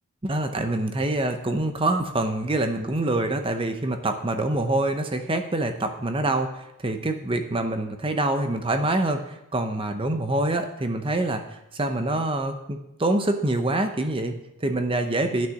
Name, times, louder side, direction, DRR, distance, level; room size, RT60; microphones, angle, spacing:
voice 1, 0.2-15.5, right 2 dB, 25° right, 7 dB, 0.7 m, -26 dB
8.8 x 6.6 x 6.3 m, 0.88 s
head